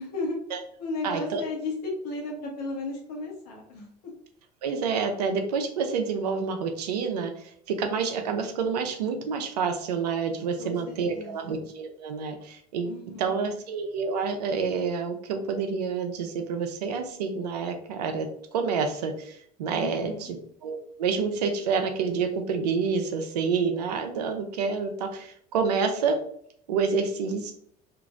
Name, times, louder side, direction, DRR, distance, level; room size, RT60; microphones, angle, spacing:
voice 1, 0.0-0.4 0.8-3.9 10.6-11.6 12.8-13.3 19.7-20.3, left 2 dB, 75° left, -1 dB, 1.1 m, -34 dB
voice 2, 1.0-1.4 4.6-20.1 20.6-26.2 26.7-27.5, right 5 dB, 85° right, 6 dB, 0.5 m, -28 dB
2.9 x 2.5 x 2.4 m, 0.64 s
hypercardioid pair, 75°, 20 cm